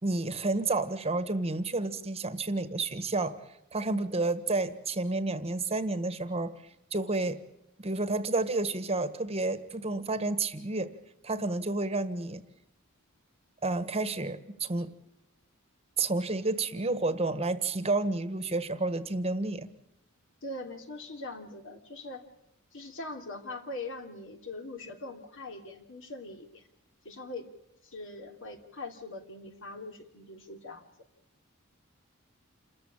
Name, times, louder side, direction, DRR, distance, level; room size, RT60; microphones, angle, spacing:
voice 1, 0.0-3.4 3.7-6.6 6.9-7.4 7.8-10.9 11.2-12.4 13.6-14.9 16.0-19.7, right 2 dB, 30° right, 12 dB, 1.4 m, -30 dB
voice 2, 20.4-22.3 22.7-26.7 27.0-27.5 27.8-30.9, left 2 dB, 60° left, 5 dB, 3.0 m, -42 dB
28.5 x 14.0 x 8.7 m, 0.86 s
head